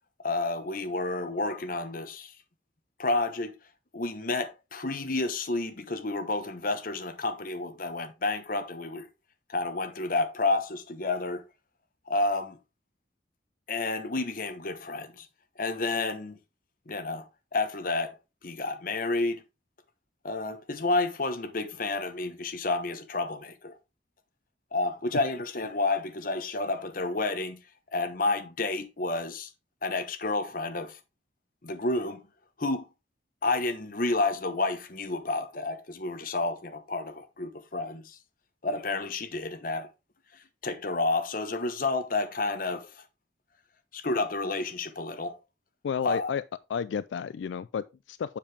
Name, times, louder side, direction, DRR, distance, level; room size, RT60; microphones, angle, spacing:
voice 1, 0.2-2.3 3.0-3.6 3.9-9.1 9.5-11.4 12.1-12.6 13.7-15.3 15.6-16.4 16.9-17.3 17.5-18.1 18.4-19.4 20.2-23.8 24.7-27.6 27.9-29.5 29.8-31.0 31.6-32.2 32.6-32.9 33.4-38.2 38.6-39.9 40.6-42.9 43.9-45.3 46.0-46.3, left 2 dB, 50° left, 1.1 m, -30 dB
voice 2, 45.8-46.4 46.7-48.4, left 7 dB, 85° left, 0.3 m, -32 dB
7.3 x 7.0 x 3.4 m
head